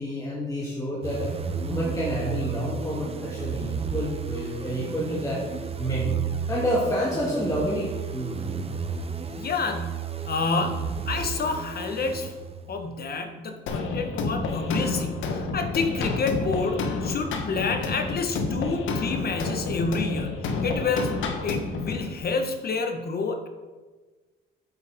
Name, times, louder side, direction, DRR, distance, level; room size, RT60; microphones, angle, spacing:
voice 1, 0.0-1.3 1.7-5.4 5.8-6.2 6.5-8.4, equal, 15° left, -7 dB, 2.6 m, -28 dB
sound 1, 1.0-12.8, right 6 dB, 30° right, 0.9 m, -32 dB
voice 2, 9.3-12.3 12.7-21.1 21.4-23.5, left 4 dB, 50° left, 5 dB, 1.3 m, -29 dB
sound 2, 13.7-22.0, left 3 dB, 80° left, 1.1 m, -29 dB
8.8 x 8.3 x 3.6 m, 1.3 s
cardioid pair, 90°, 20 cm